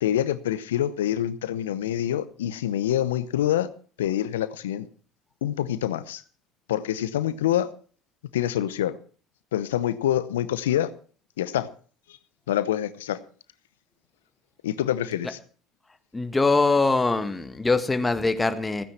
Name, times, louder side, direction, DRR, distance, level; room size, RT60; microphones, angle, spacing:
voice 1, 0.0-3.7 4.0-4.9 5.4-6.2 6.7-7.7 8.3-9.0 9.5-10.9 11.4-11.7 12.5-13.2 14.6-15.4, left 11 dB, 85° left, 16 dB, 0.8 m, -26 dB
voice 2, 16.1-18.8, left 3 dB, 15° left, 10 dB, 1.8 m, -23 dB
16.0 x 9.7 x 5.7 m, 0.42 s
hypercardioid pair, 70°, 0 cm